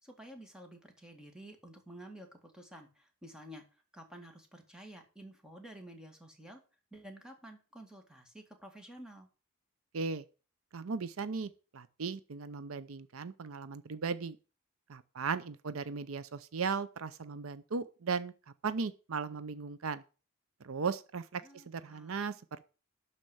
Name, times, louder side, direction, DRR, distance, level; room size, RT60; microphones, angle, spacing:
voice 1, 0.0-6.6 6.9-9.3 21.3-22.2, right 1 dB, 5° right, 1.9 m, -51 dB
voice 2, 9.9-10.2 10.7-14.4 14.9-18.3 18.6-20.0 20.6-22.6, right 5 dB, 70° right, 0.6 m, -37 dB
12.0 x 4.4 x 7.8 m
head